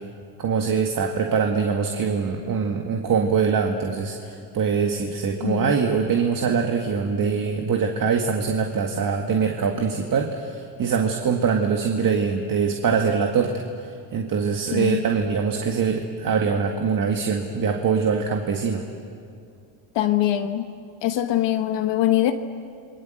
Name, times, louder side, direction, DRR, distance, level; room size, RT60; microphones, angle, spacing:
voice 1, 0.4-18.8, right 6 dB, 45° right, 3 dB, 2.0 m, -23 dB
voice 2, 5.4-5.8 14.7-15.0 19.9-20.7 21.0-22.3, left 12 dB, 60° left, 6 dB, 1.3 m, -22 dB
29.0 x 21.5 x 7.9 m, 2.4 s
cardioid pair, 105°, 48 cm